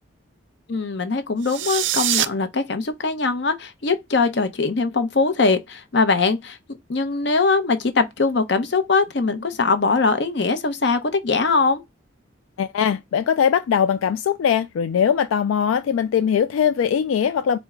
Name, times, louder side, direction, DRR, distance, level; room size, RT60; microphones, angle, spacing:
voice 1, 0.7-6.6 6.9-11.8, left 4 dB, 60° left, 0.7 m, -21 dB
sound 1, 1.4-2.3, right 13 dB, 70° right, 0.4 m, -23 dB
voice 2, 12.6-17.6, left 8 dB, 85° left, 0.3 m, -21 dB
4.4 x 2.0 x 3.5 m
head